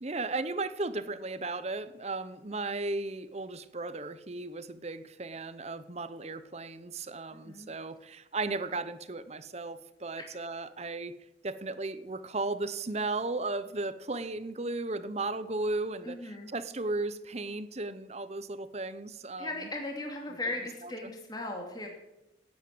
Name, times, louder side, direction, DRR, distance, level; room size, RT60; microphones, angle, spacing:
voice 1, 0.0-11.2 11.4-19.5 20.8-21.1, right 3 dB, 35° right, 13 dB, 0.8 m, -35 dB
voice 2, 7.3-7.7 16.0-16.5 19.4-21.9, left 2 dB, 20° left, 1 dB, 2.5 m, -37 dB
17.5 x 9.0 x 7.7 m, 0.93 s
head